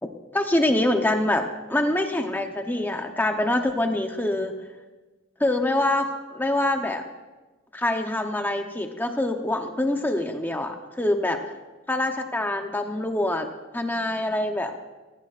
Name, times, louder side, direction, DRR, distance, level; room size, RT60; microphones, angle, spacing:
voice 1, 0.0-4.5 5.4-7.1 7.7-11.4 11.9-13.5 13.7-14.7, left 1 dB, 10° left, 4 dB, 0.8 m, -25 dB
19.0 x 15.5 x 2.5 m, 1.2 s
head